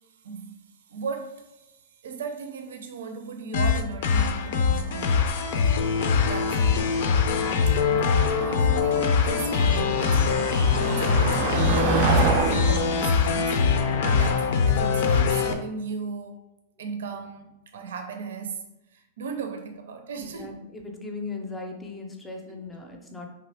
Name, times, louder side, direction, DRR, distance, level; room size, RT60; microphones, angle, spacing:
voice 1, 0.1-5.3 6.3-6.9 7.9-16.4 16.8-18.6 18.9-20.6 22.4-22.6, right 5 dB, 85° right, 6 dB, 0.6 m, -36 dB
sound 1, 3.5-15.5, left 6 dB, 55° left, 0.5 m, -23 dB
Motor vehicle (road), 4.3-14.6, right 5 dB, 40° right, 0.4 m, -30 dB
voice 2, 7.3-7.7 20.3-23.3, left 3 dB, 10° left, 2 dB, 0.6 m, -38 dB
4.8 x 3.2 x 3.4 m, 0.94 s
supercardioid pair, 165°, 0 cm